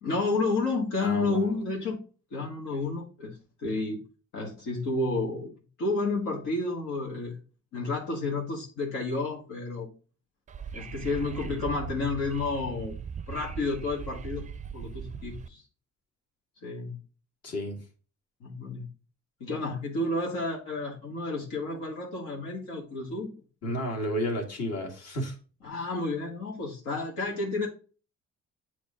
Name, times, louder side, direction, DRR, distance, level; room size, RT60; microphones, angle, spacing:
voice 1, 0.0-2.0 2.3-4.0 4.3-5.5 5.8-7.4 7.7-9.9 10.7-12.9 13.3-14.4 14.7-15.6 16.6-17.0 18.4-18.8 19.4-23.4 25.6-27.7, left 3 dB, 85° left, -2 dB, 1.7 m, -31 dB
voice 2, 1.0-1.5 2.7-2.8 17.4-17.9 23.6-25.4, equal, 55° left, 1 dB, 2.1 m, -32 dB
Wind / Subway metro underground, 10.5-15.5, right 6 dB, 25° right, 0.4 m, -39 dB
8.0 x 3.1 x 3.7 m, 0.36 s
cardioid pair, 90°, 30 cm